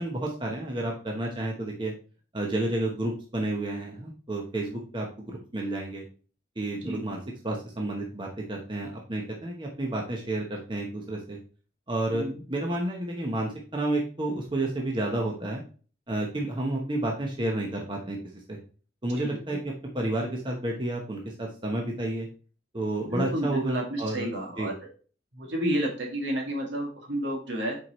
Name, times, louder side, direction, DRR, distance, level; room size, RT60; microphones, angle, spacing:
voice 1, 0.0-1.9 2.3-6.0 6.6-7.2 7.4-11.4 11.9-15.6 16.1-18.6 19.0-22.3 22.7-24.3 24.6-24.7, right 1 dB, 25° right, -1 dB, 0.9 m, -31 dB
voice 2, 19.2-19.6 23.1-24.8 25.3-27.8, right 1 dB, 70° right, 0 dB, 2.1 m, -31 dB
6.9 x 4.6 x 3.1 m, 0.39 s
head